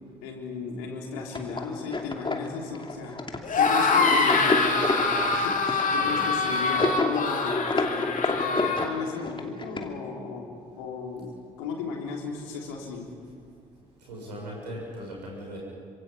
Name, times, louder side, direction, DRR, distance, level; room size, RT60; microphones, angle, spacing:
voice 1, 0.2-3.2 3.6-13.1, left 4 dB, 70° left, 1 dB, 3.7 m, -35 dB
sound 1, 1.3-9.8, left 3 dB, 25° left, 2.7 m, -29 dB
sound 2, 3.4-8.9, left 4 dB, 40° left, 3.1 m, -24 dB
voice 2, 14.1-15.6, equal, 80° right, -3 dB, 7.2 m, -38 dB
28.0 x 25.5 x 5.7 m, 2.3 s
figure-of-eight pair, 45°, 21 cm